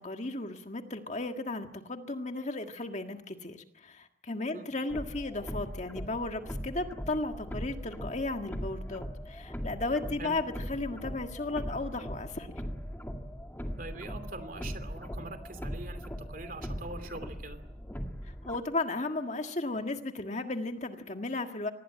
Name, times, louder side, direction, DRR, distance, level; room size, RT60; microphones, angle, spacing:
voice 1, 0.0-12.5 18.4-21.7, left 2 dB, 40° left, 6 dB, 1.7 m, -35 dB
sound 1, 4.9-18.6, equal, 10° left, 2.1 m, -40 dB
voice 2, 13.8-17.6, right 2 dB, 50° right, 9 dB, 2.8 m, -43 dB
25.0 x 19.0 x 8.8 m, 0.83 s
head